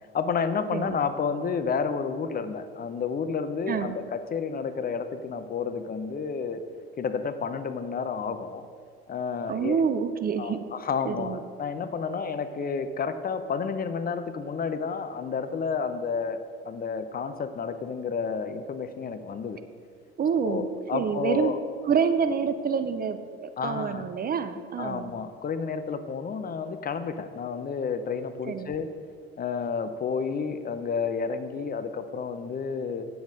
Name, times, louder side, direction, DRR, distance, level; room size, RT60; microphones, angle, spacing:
voice 1, 0.1-6.6 7.0-8.6 9.1-9.8 10.4-16.4 16.6-19.6 20.4-21.6 23.6-24.1 24.8-28.9 29.4-33.0, left 5 dB, 30° left, 10 dB, 0.6 m, -30 dB
voice 2, 9.5-10.6 11.1-11.4 20.2-20.7 20.9-21.5 21.9-23.2 23.6-25.1 28.5-28.7, right 6 dB, 30° right, 10 dB, 0.6 m, -27 dB
9.1 x 7.8 x 5.1 m, 2.2 s
figure-of-eight pair, 60°, 31 cm